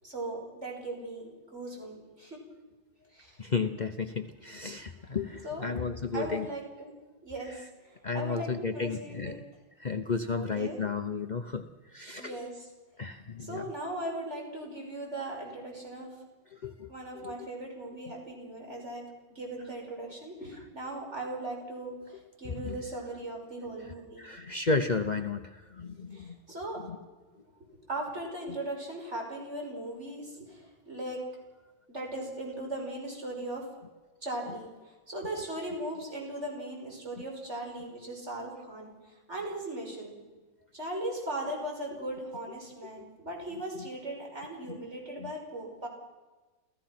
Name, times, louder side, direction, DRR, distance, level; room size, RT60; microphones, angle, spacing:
voice 1, 0.0-2.4 3.1-3.4 5.4-5.7 6.1-6.9 7.2-9.3 10.3-10.8 12.2-12.7 13.4-16.2 16.9-24.3 26.1-26.8 27.9-31.2 31.9-33.7 34.2-40.2 40.7-45.9, right 1 dB, 35° right, 0 dB, 5.9 m, -38 dB
voice 2, 3.4-6.5 8.0-9.4 9.8-11.6 11.9-12.4 13.0-13.7 16.5-16.9 17.2-17.3 22.4-22.8 24.2-26.4 26.8-27.0 43.0-43.1 45.2-45.3, left 4 dB, 85° left, 7 dB, 0.4 m, -33 dB
28.5 x 15.5 x 6.0 m, 1.2 s
omnidirectional pair, 2.1 m